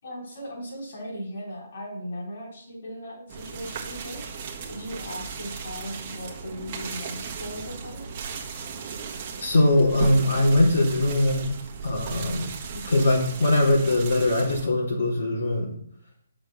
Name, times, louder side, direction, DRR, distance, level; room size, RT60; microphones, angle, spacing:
voice 1, 0.0-4.3 4.7-8.1, equal, 50° left, -3 dB, 4.5 m, -37 dB
sound 1, 3.3-14.7, right 5 dB, 25° right, 1.5 m, -36 dB
voice 2, 9.4-11.5 11.8-12.5 12.7-15.7, left 1 dB, 70° left, -5 dB, 3.9 m, -21 dB
9.0 x 6.4 x 5.9 m, 0.65 s
hypercardioid pair, 170°, 0 cm